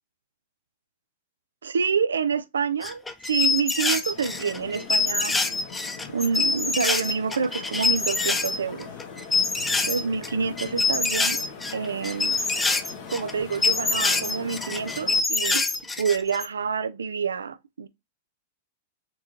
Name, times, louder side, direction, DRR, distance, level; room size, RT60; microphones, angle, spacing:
voice 1, 1.6-5.4 6.1-8.9 9.9-11.4 11.7-12.4 13.1-15.6 16.0-17.9, right 6 dB, 90° right, 0.4 m, -27 dB
sound 1, 2.8-8.6 8.8-10.3 10.6-16.5, left 3 dB, 10° left, 0.6 m, -25 dB
sound 2, 4.0-15.2, left 6 dB, 55° left, 1.3 m, -41 dB
4.4 x 3.0 x 2.5 m
hypercardioid pair, 110°, 0 cm